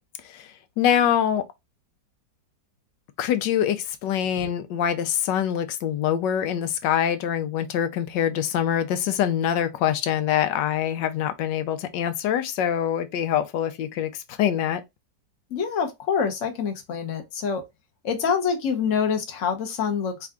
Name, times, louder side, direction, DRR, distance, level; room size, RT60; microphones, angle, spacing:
voice 1, 0.8-1.4 3.2-14.8, left 9 dB, 80° left, 1.2 m, -24 dB
voice 2, 15.5-17.6 18.0-20.3, left 6 dB, 50° left, 1.2 m, -26 dB
4.5 x 2.5 x 3.5 m
omnidirectional pair, 2.0 m